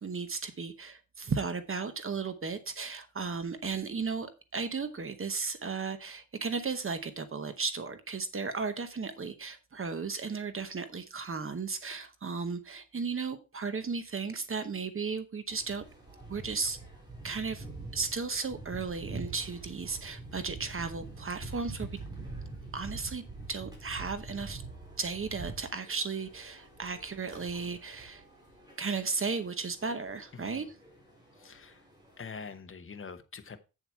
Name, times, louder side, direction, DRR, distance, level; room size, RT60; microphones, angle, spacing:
voice 1, 0.0-15.8 16.3-16.8 17.2-17.6 17.9-22.0 22.7-23.2 23.5-24.6 25.0-28.2 28.8-30.7, right 4 dB, 40° right, 0.9 m, -35 dB
sound 1, 15.5-32.5, right 3 dB, 10° right, 3.8 m, -45 dB
voice 2, 30.3-30.7 31.3-31.9 32.2-33.6, left 5 dB, 40° left, 1.0 m, -45 dB
7.9 x 7.3 x 4.4 m
wide cardioid pair, 150°, 34 cm